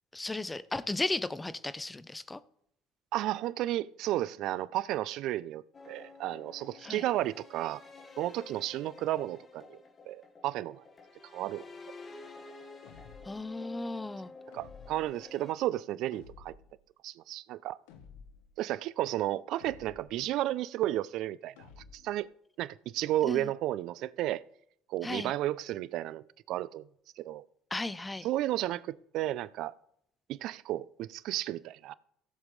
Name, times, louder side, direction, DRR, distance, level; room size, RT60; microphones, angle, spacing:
voice 1, 0.1-2.4 6.8-7.0 13.3-14.3 23.2-23.5 25.0-25.3 27.7-28.3, left 2 dB, 15° left, 0.8 m, -35 dB
voice 2, 3.1-7.8 8.2-9.8 10.1-10.8 11.3-11.6 14.5-16.5 17.0-17.8 18.6-21.5 22.0-22.3 22.6-24.4 24.9-26.9 27.2-27.4 28.2-29.7 30.3-31.9, right 14 dB, 65° right, 0.4 m, -33 dB
sound 1, 5.7-15.5, left 3 dB, 35° left, 2.4 m, -50 dB
sound 2, 12.8-13.5 14.5-15.2 16.1-16.8 17.9-18.5 19.6-20.2 21.6-22.2, left 6 dB, 75° left, 1.2 m, -53 dB
16.5 x 7.2 x 3.3 m
hypercardioid pair, 70°, 0 cm